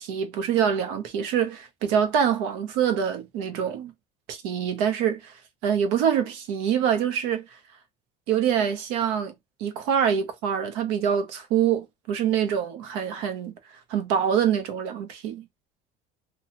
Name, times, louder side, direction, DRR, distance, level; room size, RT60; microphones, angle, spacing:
voice 1, 0.0-3.9 4.3-5.3 5.6-7.4 8.3-9.3 9.6-13.5 13.9-15.4, right 8 dB, 85° right, 0.8 m, -25 dB
2.9 x 2.3 x 2.7 m
cardioid pair, 135°, 19 cm